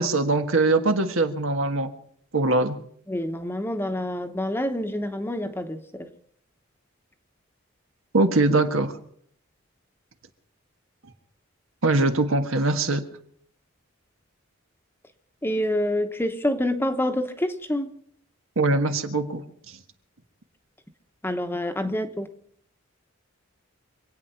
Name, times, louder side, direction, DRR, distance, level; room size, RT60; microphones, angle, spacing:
voice 1, 0.0-1.9 2.3-2.8 8.1-8.9 11.8-13.0 18.6-19.4, right 2 dB, 85° right, 7 dB, 1.6 m, -22 dB
voice 2, 3.1-6.1 15.4-18.0 21.2-22.3, left 1 dB, 10° left, 8 dB, 1.0 m, -27 dB
26.0 x 8.9 x 5.7 m, 0.66 s
head